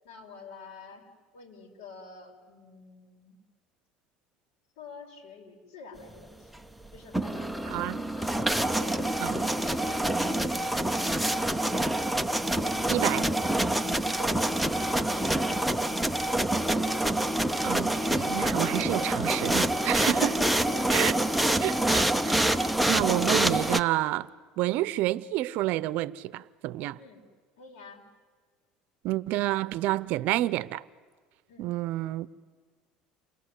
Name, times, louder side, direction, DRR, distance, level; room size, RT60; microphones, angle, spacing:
voice 1, 0.0-3.3 4.8-6.6 6.9-8.3 8.7-11.0 20.4-21.2 27.0-27.3 27.6-28.0 31.5-31.7, left 4 dB, 85° left, 4.8 m, -48 dB
sound 1, 7.0-23.8, right 1 dB, ahead, 0.7 m, -26 dB
voice 2, 7.7-8.0 9.2-9.4 12.9-13.3 17.6-20.4 20.9-21.1 21.6-22.6 22.9-24.3 24.6-27.0 29.0-30.8 31.6-32.4, right 16 dB, 65° right, 0.7 m, -29 dB
29.5 x 21.0 x 8.3 m
cardioid pair, 125°, 3 cm